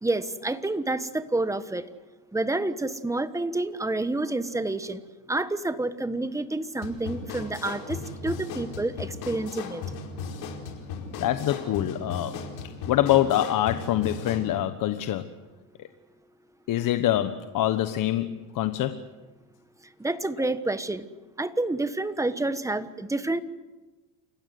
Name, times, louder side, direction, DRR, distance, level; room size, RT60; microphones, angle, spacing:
voice 1, 0.0-1.9 2.3-5.0 5.3-9.8 20.0-21.0 21.4-23.4, right 2 dB, 10° right, 12 dB, 1.3 m, -28 dB
sound 1, 6.8-14.5, left 4 dB, 75° left, 4.8 m, -37 dB
voice 2, 11.2-15.3 15.8-15.9 16.7-19.0, left 13 dB, 55° left, 10 dB, 1.2 m, -25 dB
29.0 x 16.0 x 9.4 m, 1.2 s
cardioid pair, 120°, 38 cm